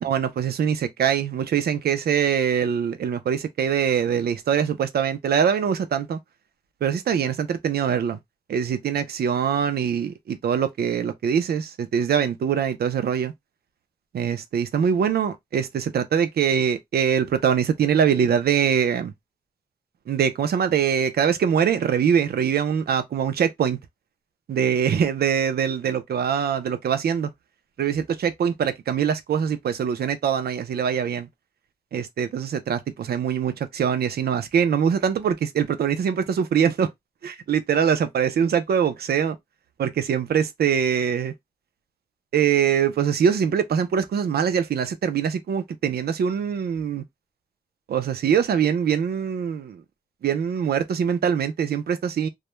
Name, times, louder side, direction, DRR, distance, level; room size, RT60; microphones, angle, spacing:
voice 1, 0.0-6.2 6.8-8.2 8.5-13.3 14.1-19.1 20.1-23.8 24.5-27.3 27.8-31.3 31.9-36.9 37.2-39.4 39.8-41.3 42.3-47.0 47.9-49.8 50.2-52.3, right 8 dB, 85° right, 0.4 m, -23 dB
2.2 x 2.1 x 2.9 m
wide cardioid pair, 160°, 16 cm